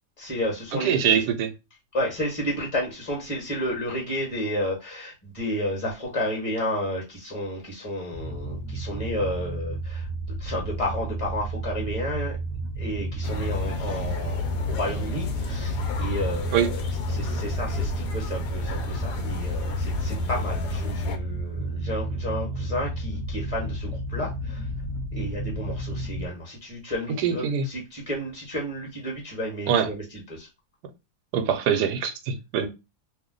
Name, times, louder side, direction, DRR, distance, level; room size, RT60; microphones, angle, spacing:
voice 1, 0.2-1.2 1.9-10.1 10.4-12.4 12.8-16.8 17.1-24.7 25.1-30.5, equal, 25° left, 1.1 m, -31 dB
voice 2, 0.8-1.5 16.5-16.7 27.2-27.7 29.7-29.9 31.3-32.7, right 8 dB, 85° right, 1.1 m, -23 dB
sound 1, 8.1-26.3, right 1 dB, 55° left, 1.2 m, -32 dB
sound 2, 13.2-21.2, left 3 dB, 80° left, 1.1 m, -32 dB
2.8 x 2.1 x 3.7 m
omnidirectional pair, 1.7 m